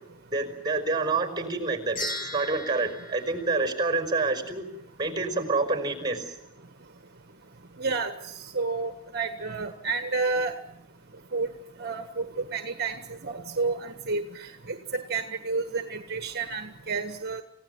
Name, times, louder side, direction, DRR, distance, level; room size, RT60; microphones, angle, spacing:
voice 1, 0.3-4.6 5.0-6.3, right 3 dB, 20° right, 7 dB, 4.9 m, -28 dB
sound 1, 2.0-4.4, left 1 dB, 40° left, 7.3 m, -38 dB
voice 2, 7.8-8.1 8.5-10.5 11.3-11.5 11.8-13.0 13.2-17.4, right 4 dB, 45° right, 7 dB, 1.5 m, -30 dB
29.0 x 16.5 x 9.4 m, 0.80 s
head